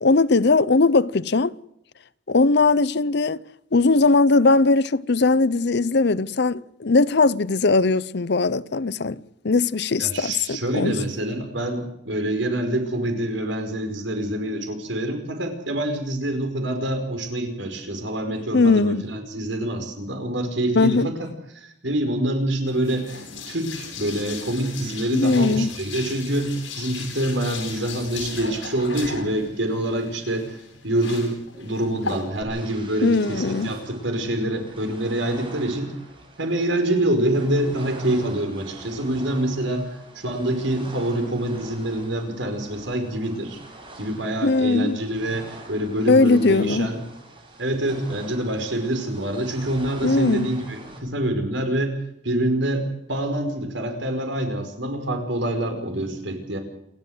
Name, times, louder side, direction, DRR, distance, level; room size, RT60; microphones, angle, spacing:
voice 1, 0.0-1.5 2.3-3.4 3.7-9.2 9.4-11.0 18.5-19.1 20.8-21.1 25.1-25.7 33.0-33.7 44.4-45.0 46.1-46.9 50.0-50.5, left 3 dB, 60° left, 0.7 m, -19 dB
voice 2, 10.0-30.6 30.8-35.9 36.4-39.9 40.1-43.6 44.0-47.0 47.6-52.0 52.2-56.6, right 1 dB, 80° right, 5.1 m, -26 dB
sound 1, 22.7-32.4, left 4 dB, 80° left, 7.7 m, -37 dB
sound 2, 32.5-51.0, right 2 dB, 30° right, 7.8 m, -44 dB
28.5 x 13.0 x 8.0 m
head